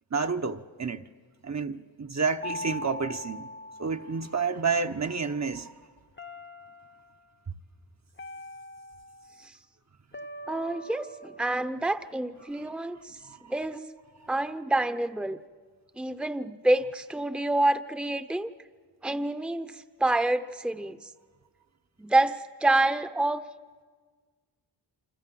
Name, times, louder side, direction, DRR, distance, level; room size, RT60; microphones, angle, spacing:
voice 1, 0.1-1.0 1.4-3.5 3.8-5.7 13.3-13.5, right 5 dB, 40° right, 1.1 m, -30 dB
sound 1, 2.4-4.8 6.2-7.2 8.2-9.5 10.1-12.5, left 1 dB, 25° left, 1.0 m, -42 dB
voice 2, 10.5-13.2 13.5-13.8 14.3-15.4 16.0-18.5 19.0-21.0 22.0-23.4, right 2 dB, ahead, 0.9 m, -27 dB
28.0 x 26.0 x 7.7 m
wide cardioid pair, 75°, 44 cm